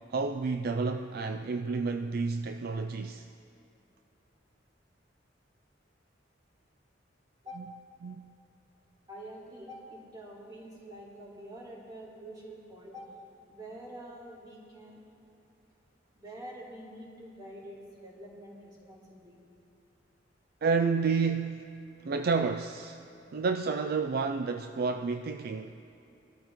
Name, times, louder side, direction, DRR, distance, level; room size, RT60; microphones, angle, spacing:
voice 1, 0.0-3.3 7.6-7.7 8.0-8.3 20.6-23.0 23.3-25.8, right 4 dB, 55° right, 0.4 m, -30 dB
voice 2, 9.1-13.1 13.5-15.0 16.2-19.4, right 1 dB, 25° right, 3.6 m, -46 dB
22.5 x 13.5 x 3.1 m
head